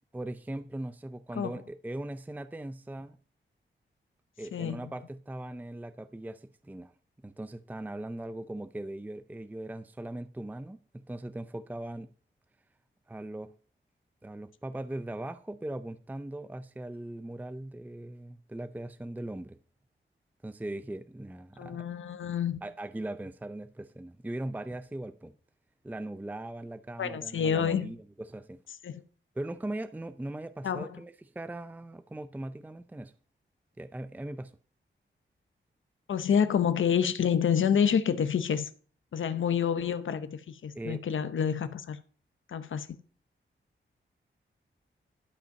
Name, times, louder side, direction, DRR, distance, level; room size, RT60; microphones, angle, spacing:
voice 1, 0.1-3.2 4.4-6.9 7.2-12.1 13.1-13.5 14.2-19.6 20.4-21.9 22.6-25.4 25.8-28.6 29.4-33.1 33.8-34.5 36.3-36.4 40.7-41.1, right 1 dB, 10° right, 0.5 m, -39 dB
voice 2, 4.5-4.9 21.6-22.6 27.0-27.9 28.8-29.0 30.6-31.0 36.1-38.7 39.1-42.0 42.5-42.9, left 7 dB, 75° left, 0.8 m, -28 dB
12.0 x 5.4 x 6.4 m
wide cardioid pair, 95°, 20 cm